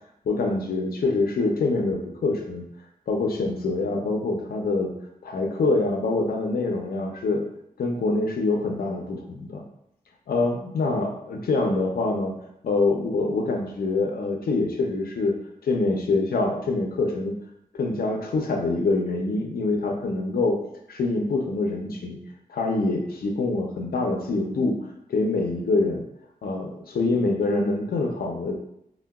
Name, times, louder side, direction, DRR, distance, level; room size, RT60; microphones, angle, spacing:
voice 1, 0.3-2.6 3.1-4.9 5.2-7.4 7.8-9.6 10.3-12.3 12.6-15.3 15.6-17.3 17.8-20.6 20.9-22.2 22.5-24.8 25.1-26.0 26.4-28.5, left 3 dB, 75° left, 2 dB, 0.5 m, -25 dB
3.7 x 2.1 x 2.2 m, 0.78 s
wide cardioid pair, 155°, 15 cm